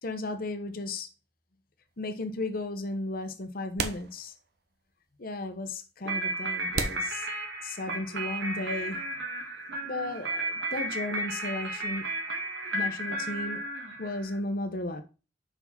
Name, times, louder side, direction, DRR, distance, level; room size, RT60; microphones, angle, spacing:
voice 1, 0.0-1.1 2.0-4.3 5.2-7.3 7.6-9.0 9.8-12.1 12.7-13.6 14.0-15.0, left 2 dB, 50° left, 1.0 m, -34 dB
sound 1, 1.9-2.0 3.1-3.2 3.8-4.7 5.0-5.1 5.8-5.9 6.7-8.0, right 4 dB, 60° right, 0.8 m, -35 dB
sound 2, 6.1-14.4, right 2 dB, 90° right, 2.0 m, -34 dB
5.7 x 4.8 x 5.4 m
head